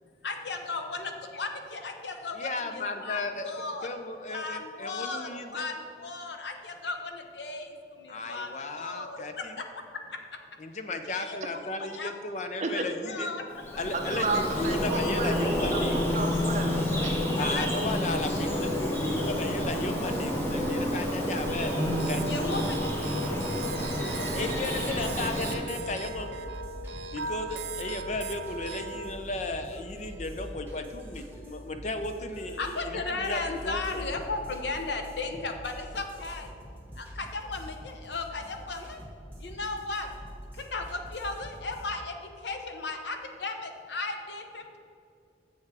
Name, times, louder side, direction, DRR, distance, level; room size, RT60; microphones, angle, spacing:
voice 1, 0.2-3.9 4.3-10.2 11.1-11.4 11.8-12.4 12.7-13.5 17.3-17.9 18.3-18.4 22.3-22.9 26.9-27.2 32.6-36.5 36.9-39.0 39.4-40.1 40.5-44.8, left 3 dB, 80° left, 5 dB, 0.8 m, -36 dB
voice 2, 2.3-3.5 3.8-5.7 8.1-9.6 10.6-13.3 13.8-16.0 17.4-21.8 22.1-22.4 24.3-26.3 27.1-34.0, left 2 dB, 40° left, 7 dB, 0.6 m, -35 dB
Bird vocalization bird call bird song, 13.5-25.5, left 1 dB, 15° left, 1.2 m, -29 dB
voice 3, 13.9-17.2, right 3 dB, 40° right, 4 dB, 0.7 m, -32 dB
sound 1, 21.6-29.1, right 4 dB, 80° right, 0.6 m, -39 dB
sound 2, 24.1-42.0, equal, 10° right, 1.3 m, -45 dB
7.2 x 6.6 x 4.8 m, 2.5 s
head